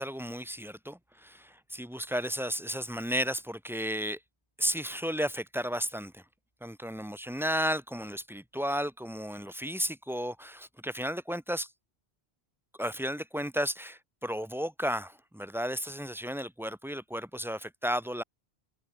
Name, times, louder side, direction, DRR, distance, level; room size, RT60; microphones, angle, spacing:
voice 1, 0.0-4.2 4.6-6.2 6.6-11.7 12.8-18.2, equal, 5° right, 0.6 m, -33 dB
open air
omnidirectional pair, 1.1 m